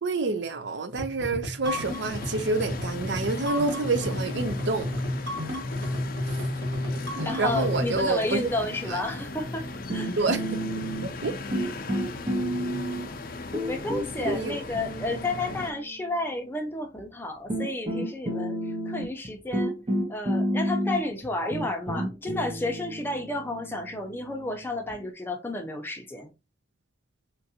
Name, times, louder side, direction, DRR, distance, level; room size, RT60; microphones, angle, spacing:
voice 1, 0.0-4.9 6.3-6.5 7.1-8.5 8.8-9.0 10.2-10.4 11.0-11.3 14.2-14.6, right 3 dB, 65° right, 0.5 m, -28 dB
sound 1, 0.9-7.9, left 1 dB, 90° right, 1.8 m, -32 dB
sound 2, 1.6-15.7, left 3 dB, 50° left, 0.5 m, -38 dB
voice 2, 7.2-9.6 9.9-10.1 13.7-18.6 18.9-19.7 20.1-26.3, left 2 dB, 10° left, 0.7 m, -31 dB
sound 3, 9.9-11.3 11.5-13.1 13.5-16.0 17.0-17.1 17.5-25.0, equal, 30° right, 0.9 m, -31 dB
4.4 x 2.6 x 2.7 m
head